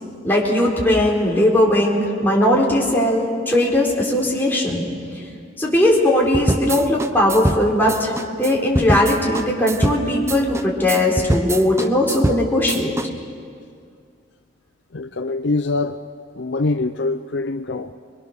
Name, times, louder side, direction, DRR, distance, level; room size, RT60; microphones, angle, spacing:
voice 1, 0.2-4.9 5.6-8.1 8.4-12.9, left 1 dB, 10° left, 4.3 m, -18 dB
sound 1, 6.3-13.1, right 1 dB, 15° right, 0.7 m, -24 dB
voice 2, 14.9-16.0 16.4-17.9, left 3 dB, 65° left, 0.6 m, -24 dB
27.5 x 22.0 x 6.7 m
head